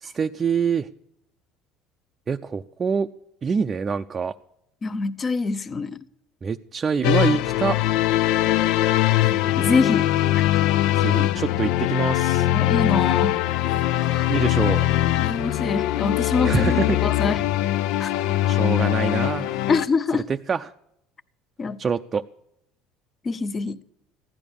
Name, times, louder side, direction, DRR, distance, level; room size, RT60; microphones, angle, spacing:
voice 1, 0.0-0.9 2.3-3.1 3.4-4.3 6.4-7.8 11.0-12.5 14.3-14.8 16.4-17.0 18.2-19.6 20.3-20.7 21.8-22.2, right 6 dB, 30° right, 0.5 m, -25 dB
voice 2, 4.8-6.0 9.2-9.3 9.6-10.6 12.5-13.4 14.0-14.2 15.2-17.5 18.0-18.1 19.7-20.2 21.6-21.8 23.2-23.8, left 4 dB, 30° left, 0.8 m, -25 dB
sound 1, 7.0-19.9, left 14 dB, 70° left, 0.5 m, -21 dB
15.5 x 11.0 x 6.9 m
supercardioid pair, 105°, 0 cm